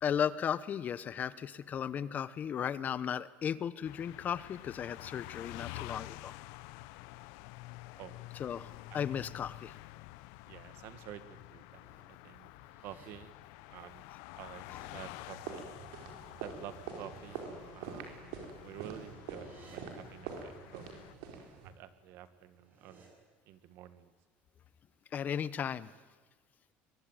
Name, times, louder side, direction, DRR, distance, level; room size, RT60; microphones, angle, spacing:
voice 1, 0.0-6.3 8.4-9.7 14.7-14.8 25.1-25.9, left 8 dB, 40° left, 17 dB, 1.0 m, -35 dB
sound 1, 3.8-21.1, left 19 dB, 85° left, 0.7 m, -49 dB
voice 2, 10.5-11.9 12.2-12.5 12.8-13.3 13.7-14.0 14.4-15.7 16.4-17.4 17.7-18.3 18.6-21.1 21.6-23.1 23.5-24.1, right 12 dB, 65° right, 13 dB, 1.8 m, -50 dB
sound 2, 11.5-12.0 12.4-13.1 14.2-14.9 16.7-17.4 18.6-19.8 22.3-23.1, right 4 dB, 45° right, 7.6 m, -62 dB
sound 3, 15.2-21.7, right 6 dB, 90° right, 4.7 m, -45 dB
23.5 x 22.0 x 9.2 m, 1.4 s
cardioid pair, 120°, 4 cm